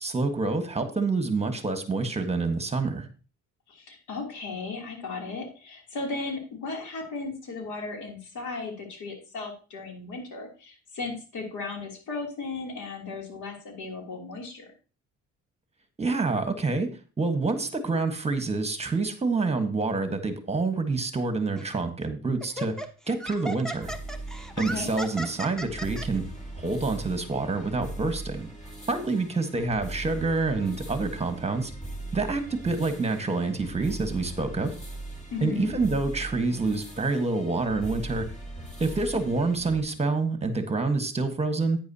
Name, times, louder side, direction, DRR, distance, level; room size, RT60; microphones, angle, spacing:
voice 1, 0.0-3.1 16.0-16.9 17.2-23.9 24.6-26.2 26.6-28.5 28.9-31.7 32.1-34.7 35.4-38.3 38.8-41.8, right 3 dB, 20° right, 7 dB, 1.5 m, -27 dB
voice 2, 3.7-14.7 24.5-24.9 35.3-35.7, left 3 dB, 80° left, 1 dB, 3.3 m, -36 dB
Laughter, 21.6-21.8 22.4-26.1, right 1 dB, ahead, 0.9 m, -36 dB
sound 1, 23.8-39.8, right 2 dB, 25° left, 2.1 m, -40 dB
10.5 x 9.3 x 2.9 m, 0.35 s
cardioid pair, 90°, 30 cm